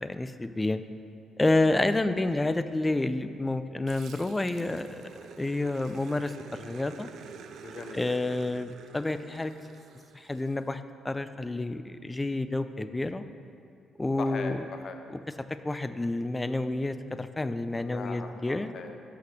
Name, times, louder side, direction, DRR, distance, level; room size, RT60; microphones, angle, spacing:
voice 1, 0.0-0.8 1.4-5.0 5.4-7.1 7.9-9.5 10.1-13.2 14.0-14.7 15.6-18.7, left 2 dB, 15° left, 11 dB, 0.3 m, -29 dB
voice 2, 1.9-2.4 7.6-8.4 14.2-15.0 17.7-19.0, left 5 dB, 55° left, 6 dB, 0.6 m, -41 dB
Growling, 3.9-10.6, right 6 dB, 75° right, 0.4 m, -48 dB
5.9 x 5.7 x 5.8 m, 2.5 s
cardioid pair, 90°, 0 cm